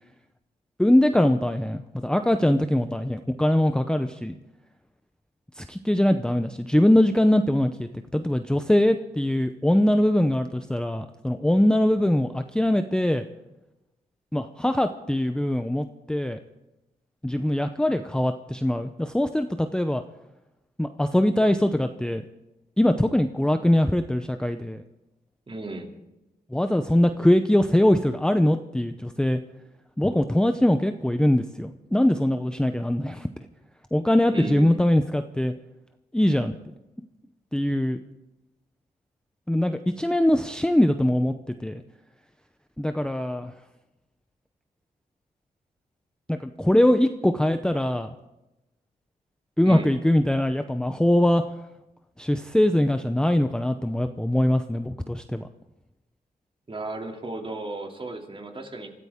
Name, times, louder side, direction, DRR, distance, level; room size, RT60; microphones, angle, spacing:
voice 1, 0.8-4.4 5.6-13.2 14.3-16.4 17.2-20.0 20.8-22.2 22.8-24.8 26.5-29.4 30.0-33.3 33.9-35.5 36.1-36.6 37.0-37.1 37.5-38.0 39.5-41.3 41.6-41.8 42.8-43.5 46.3-48.1 49.6-51.4 52.2-55.5, left 1 dB, 5° left, 7 dB, 0.7 m, -22 dB
voice 2, 25.5-25.9 34.3-34.8 49.6-49.9 56.7-58.9, right 2 dB, 35° right, 2 dB, 2.8 m, -35 dB
26.0 x 14.0 x 3.7 m, 0.96 s
cardioid pair, 80°, 16 cm